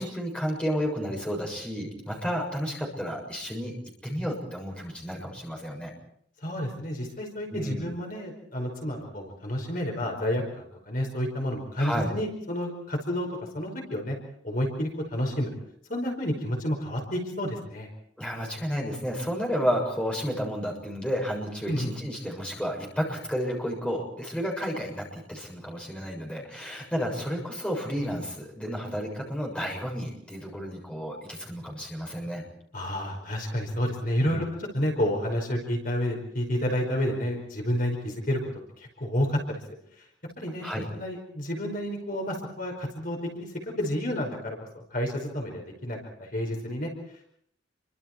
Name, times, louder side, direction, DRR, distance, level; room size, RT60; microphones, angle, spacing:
voice 1, 0.0-3.7 4.0-5.9 7.5-7.9 11.8-12.1 18.2-32.5 34.2-34.5 40.6-40.9, equal, 5° left, -1 dB, 6.9 m, -31 dB
voice 2, 6.4-13.3 13.5-14.2 14.4-15.5 15.9-17.9 21.7-21.9 32.7-34.5 34.7-38.4 38.8-39.6 40.0-40.1 40.4-40.7 40.9-43.5 43.8-44.6 44.9-46.9, equal, 45° left, 1 dB, 5.1 m, -30 dB
29.5 x 24.5 x 4.6 m, 0.68 s
head